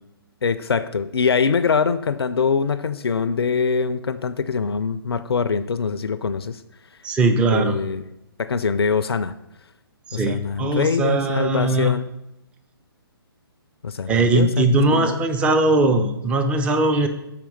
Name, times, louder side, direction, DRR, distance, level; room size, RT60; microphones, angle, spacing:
voice 1, 0.4-6.6 7.5-8.0 8.4-9.3 10.1-12.1 13.8-15.2, left 5 dB, 80° left, 12 dB, 0.4 m, -23 dB
voice 2, 7.0-7.8 10.1-11.9 14.1-17.1, right 2 dB, 10° right, 6 dB, 0.4 m, -20 dB
5.9 x 4.4 x 5.3 m, 0.88 s
figure-of-eight pair, 135°, 13 cm